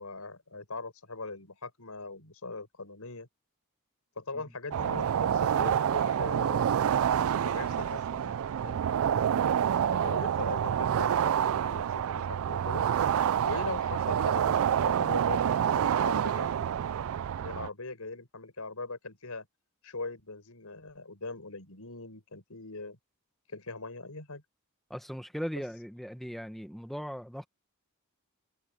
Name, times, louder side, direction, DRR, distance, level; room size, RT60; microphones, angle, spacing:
voice 1, 0.0-3.3 4.2-6.8 7.4-8.8 10.0-12.9 13.4-16.7 17.4-19.5 19.8-23.0 23.5-24.4, left 3 dB, 80° left, 5.5 m, -41 dB
sound 1, 4.7-17.7, right 9 dB, 65° right, 0.3 m, -27 dB
voice 2, 9.0-9.4 24.9-27.5, equal, ahead, 1.2 m, -39 dB
head